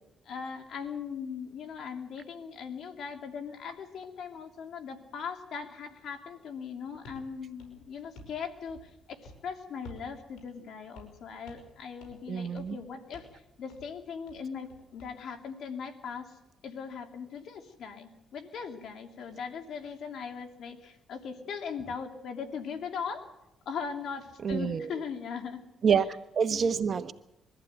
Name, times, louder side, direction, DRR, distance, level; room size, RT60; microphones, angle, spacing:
voice 1, 0.2-16.4 16.6-23.3 23.6-25.6 26.5-26.7, left 6 dB, 70° left, 5 dB, 3.0 m, -39 dB
sound 1, 7.0-7.3 7.6-8.4 8.7-9.0 9.2-9.4 9.8-10.1 10.4-10.5 10.9-11.2 11.5-11.7 12.0-12.3 12.6-12.8 13.1-13.4 13.7-13.9 14.3-15.1, left 1 dB, 90° left, 5.8 m, -51 dB
voice 2, 12.3-12.8 24.4-24.9 25.8-27.1, right 6 dB, 50° right, 10 dB, 1.2 m, -27 dB
23.0 x 14.0 x 9.1 m, 0.87 s
cardioid pair, 90°, 0 cm